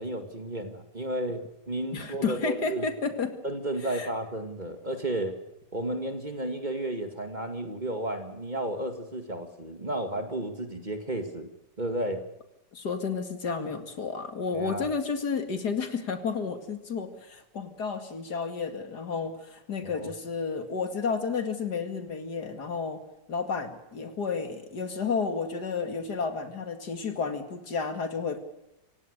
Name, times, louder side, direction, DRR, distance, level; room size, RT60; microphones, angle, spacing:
voice 1, 0.0-2.9 3.4-5.4 5.7-11.5 11.8-12.2 14.5-14.9 19.9-20.1, right 1 dB, 25° right, 7 dB, 2.1 m, -33 dB
voice 2, 1.9-3.4 3.9-4.1 12.7-23.0 23.3-28.4, left 5 dB, 65° left, 8 dB, 2.7 m, -31 dB
27.0 x 17.0 x 6.6 m, 0.87 s
omnidirectional pair, 1.9 m